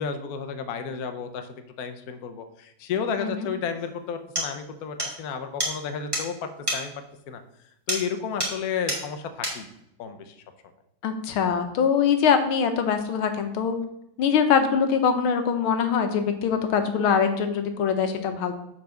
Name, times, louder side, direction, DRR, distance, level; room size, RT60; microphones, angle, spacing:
voice 1, 0.0-6.9 7.3-7.4 7.9-9.7 10.0-10.4, left 6 dB, 60° left, 7 dB, 1.0 m, -32 dB
sound 1, 3.8-3.9 4.4-4.5 5.0-5.2 5.6-5.7 6.1-6.3 6.7-6.8 7.9-8.1 8.4-8.6 8.9-9.0 9.4-9.6, equal, 10° right, 2.0 m, -28 dB
voice 2, 11.0-13.8 14.2-18.5, left 7 dB, 80° left, 7 dB, 1.7 m, -23 dB
7.3 x 4.6 x 6.3 m, 0.79 s
omnidirectional pair, 2.3 m